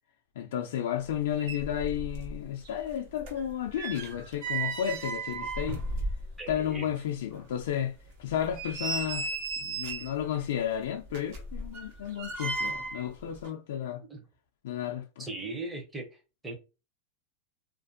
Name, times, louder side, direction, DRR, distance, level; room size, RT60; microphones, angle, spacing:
voice 1, 0.4-5.8 6.5-9.3 9.6-14.0 14.6-15.3, left 10 dB, 75° left, 0.3 m, -32 dB
sound 1, 1.1-1.2 1.4-2.4 2.7-6.6 7.0-7.1 7.6-7.7 8.3-10.2 11.1-13.1 13.3-13.5, right 3 dB, 55° right, 0.8 m, -35 dB
voice 2, 6.4-6.9 14.1-14.2 15.2-16.1 16.4-16.5, right 2 dB, 10° right, 0.6 m, -38 dB
2.5 x 2.2 x 2.5 m
supercardioid pair, 135°, 0 cm